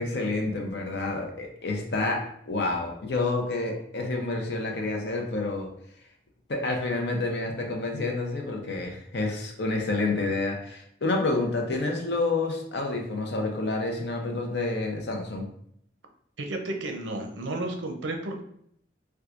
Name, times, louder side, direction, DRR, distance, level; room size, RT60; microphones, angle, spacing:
voice 1, 0.0-5.7 6.5-15.5, left 2 dB, 65° left, 1 dB, 0.7 m, -29 dB
voice 2, 16.4-18.4, right 2 dB, 85° right, 4 dB, 0.6 m, -32 dB
4.4 x 2.3 x 2.4 m, 0.68 s
head